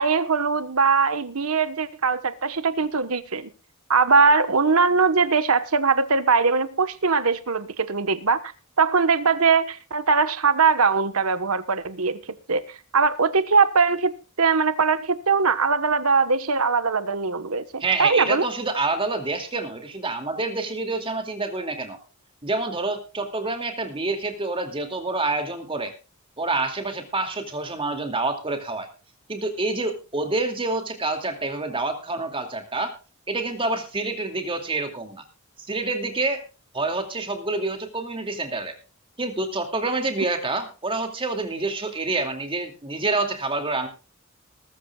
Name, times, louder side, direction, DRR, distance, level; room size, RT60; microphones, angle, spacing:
voice 1, 0.0-3.5 3.9-8.4 8.8-12.2 12.5-18.5, right 4 dB, 85° right, 1.3 m, -21 dB
voice 2, 17.8-22.0 22.4-25.9 26.4-28.9 29.3-32.9 33.3-35.2 35.7-36.4 36.7-38.7 39.2-43.9, right 3 dB, 25° right, 2.5 m, -27 dB
20.5 x 13.5 x 2.4 m
head